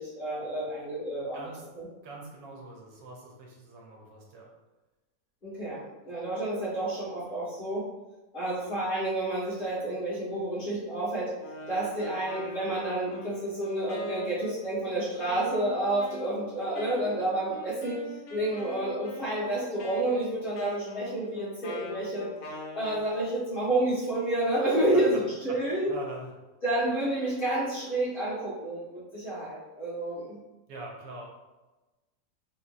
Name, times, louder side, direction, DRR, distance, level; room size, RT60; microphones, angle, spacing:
voice 1, 0.0-1.5 1.7-1.8 5.4-7.9 8.3-11.3 11.7-18.0 18.3-22.3 22.7-25.9 26.6-30.4, right 1 dB, 30° left, -11 dB, 1.5 m, -30 dB
voice 2, 1.3-1.6 2.0-4.5 24.9-25.0 25.5-25.6 25.9-26.3 30.7-31.2, right 2 dB, 80° right, -1 dB, 1.4 m, -43 dB
Wind instrument woodwind instrument, 11.4-23.1, left 2 dB, 85° left, 1.3 m, -43 dB
3.5 x 2.9 x 2.5 m, 1.1 s
omnidirectional pair, 1.9 m